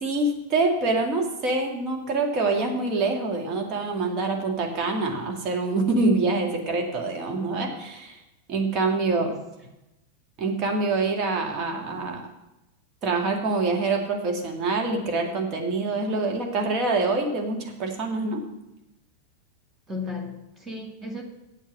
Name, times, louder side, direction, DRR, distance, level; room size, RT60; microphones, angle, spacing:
voice 1, 0.0-8.2 8.5-9.3 10.4-12.2 13.0-18.4, right 3 dB, 35° right, 2 dB, 2.1 m, -25 dB
voice 2, 19.9-21.2, left 3 dB, 15° right, 3 dB, 2.1 m, -35 dB
8.2 x 8.0 x 7.4 m, 0.94 s
figure-of-eight pair, 90°, 0 cm